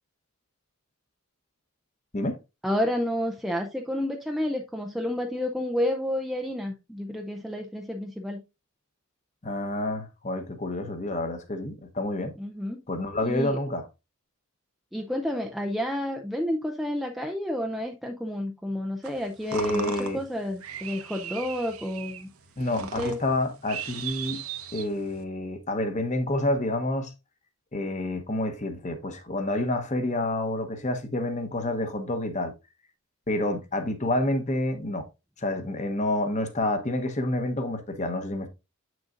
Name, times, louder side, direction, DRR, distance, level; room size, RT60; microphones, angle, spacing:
voice 1, 2.6-8.4 12.4-12.8 13.3-13.6 14.9-22.3 22.8-23.2, left 1 dB, ahead, 0.4 m, -30 dB
voice 2, 9.4-12.3 12.9-13.9 19.5-20.2 22.6-24.4 24.7-27.1 27.7-32.5 33.3-35.1 35.4-38.5, left 1 dB, 30° left, 1.0 m, -28 dB
sound 1, 19.0-25.2, right 7 dB, 75° right, 1.0 m, -38 dB
7.5 x 6.3 x 2.5 m
head